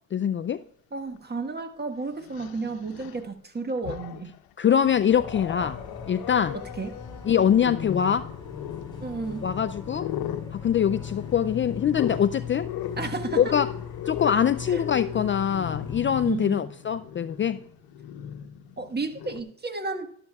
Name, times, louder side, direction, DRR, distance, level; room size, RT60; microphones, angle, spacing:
voice 1, 0.1-0.6 4.6-5.8 6.1-6.6 7.2-8.3 9.4-10.1 10.5-12.7 13.4-13.7 14.1-17.6, left 8 dB, 35° left, 0.4 m, -23 dB
voice 2, 0.9-4.3 6.8-7.0 9.0-9.5 13.0-13.5 14.7-14.8 16.2-16.6 18.8-20.1, right 3 dB, 25° right, 1.4 m, -32 dB
Growling, 1.2-1.3 2.2-3.3 3.7-4.4 4.8-19.4, left 10 dB, 75° left, 0.8 m, -37 dB
sound 1, 5.1-16.3, left 7 dB, 10° left, 4.3 m, -39 dB
12.5 x 12.0 x 2.3 m
cardioid pair, 80°, 37 cm